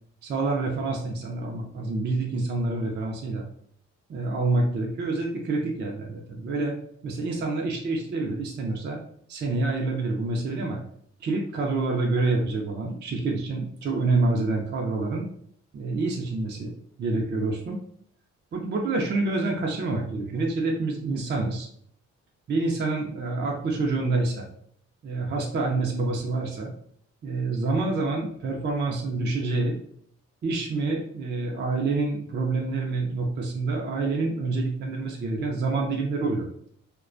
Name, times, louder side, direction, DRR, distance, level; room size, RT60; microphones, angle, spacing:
voice 1, 0.2-3.5 4.1-6.8 7.0-9.0 9.3-10.8 11.2-15.3 15.7-16.7 17.0-17.8 18.5-21.7 22.5-24.5 25.0-26.7 27.2-29.8 30.4-36.5, right 3 dB, 35° right, 0 dB, 0.4 m, -27 dB
2.3 x 2.2 x 2.4 m, 0.66 s
cardioid pair, 90°, 30 cm